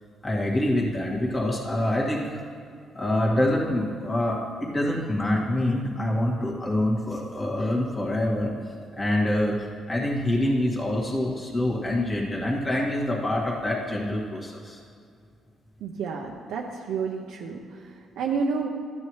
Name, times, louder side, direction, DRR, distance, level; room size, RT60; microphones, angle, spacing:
voice 1, 0.2-2.4 2.9-8.5 8.9-14.8, left 1 dB, 25° left, -2 dB, 2.1 m, -26 dB
voice 2, 15.8-18.7, right 5 dB, 85° right, -1 dB, 0.7 m, -30 dB
13.5 x 9.5 x 3.2 m, 2.3 s
cardioid pair, 90°, 0 cm